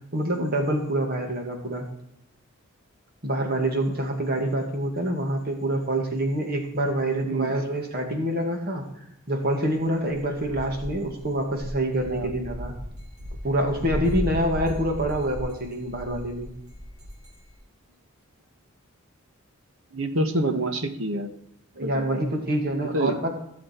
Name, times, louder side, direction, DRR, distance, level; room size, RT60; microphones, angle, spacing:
voice 1, 0.1-1.9 3.2-8.8 9.3-12.7 13.4-16.5 21.8-23.3, right 1 dB, 45° right, 3 dB, 2.2 m, -26 dB
sound 1, 10.2-17.5, equal, 85° right, 3.9 m, -36 dB
voice 2, 19.9-21.3 21.8-22.2 22.9-23.1, right 1 dB, 65° right, 8 dB, 1.3 m, -27 dB
16.5 x 7.5 x 4.5 m, 0.76 s
head